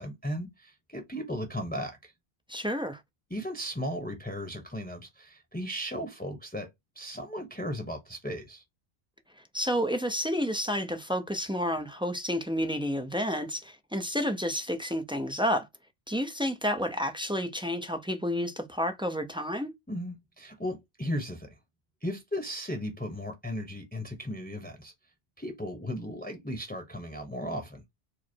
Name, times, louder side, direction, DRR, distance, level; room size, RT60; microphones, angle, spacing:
voice 1, 0.0-2.1 3.3-6.7 7.0-8.6 19.9-21.5 22.0-24.9 25.4-27.8, equal, 10° left, 0.8 m, -36 dB
voice 2, 2.5-3.0 9.5-15.7 16.1-19.7, equal, 10° right, 0.3 m, -30 dB
4.8 x 2.0 x 4.4 m
omnidirectional pair, 1.1 m